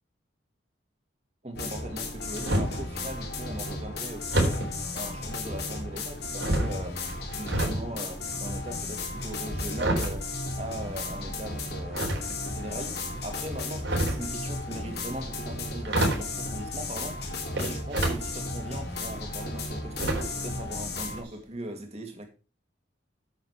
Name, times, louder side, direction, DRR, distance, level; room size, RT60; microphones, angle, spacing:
voice 1, 1.4-4.6 4.9-7.0 7.3-12.2 12.5-22.3, right 1 dB, 35° right, 2.4 m, -40 dB
sound 1, 1.5-21.2, left 2 dB, 55° left, 3.1 m, -35 dB
sound 2, 1.9-2.9 4.3-4.7 5.6-6.0 6.4-7.8 8.1-11.2 11.9-12.7 13.6-14.3 15.5-15.6 15.8-16.4 17.5-18.2 18.7-18.8 20.0-20.5 20.8-20.9 21.3-21.4, right 1 dB, 70° right, 4.0 m, -28 dB
9.2 x 8.1 x 4.9 m
head